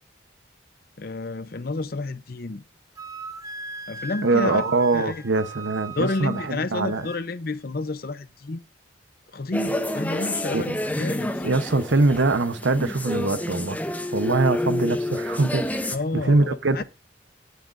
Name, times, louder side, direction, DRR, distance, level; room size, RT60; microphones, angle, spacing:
voice 1, 1.0-2.6 3.9-4.6 4.9-5.2 6.0-8.6 9.3-11.4 15.9-16.8, left 3 dB, 50° left, 0.6 m, -30 dB
Wind instrument woodwind instrument, 3.0-7.2, right 3 dB, 20° right, 0.9 m, -38 dB
voice 2, 4.2-7.1 10.5-10.7 11.4-13.8 14.1-16.8, right 3 dB, 80° right, 0.9 m, -23 dB
sound 1, 9.5-16.0, left 1 dB, 10° left, 0.6 m, -29 dB
18.5 x 7.9 x 2.6 m
head